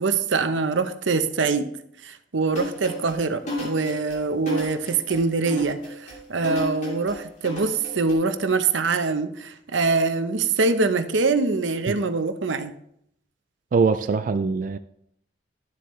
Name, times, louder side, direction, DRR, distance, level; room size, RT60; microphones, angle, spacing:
voice 1, 0.0-1.7 2.0-12.7, right 4 dB, 85° right, 9 dB, 0.7 m, -24 dB
sound 1, 2.5-8.1, left 1 dB, 40° left, 2.8 m, -33 dB
voice 2, 13.7-14.8, right 4 dB, 45° right, 10 dB, 0.3 m, -22 dB
11.0 x 7.8 x 3.2 m, 0.71 s
head